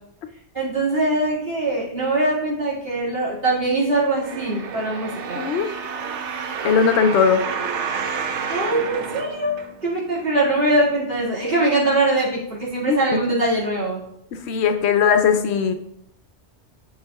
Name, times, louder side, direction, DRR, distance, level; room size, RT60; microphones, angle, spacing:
voice 1, 0.5-5.4 8.5-14.0, right 2 dB, 60° right, -8 dB, 2.4 m, -22 dB
sound 1, 4.2-10.1 10.7-10.8, right 6 dB, 85° right, 1.0 m, -30 dB
voice 2, 5.4-5.7 6.6-7.4 12.9-13.2 14.3-15.7, left 6 dB, 70° left, 7 dB, 0.8 m, -19 dB
9.6 x 6.2 x 2.3 m, 0.78 s
omnidirectional pair, 1.2 m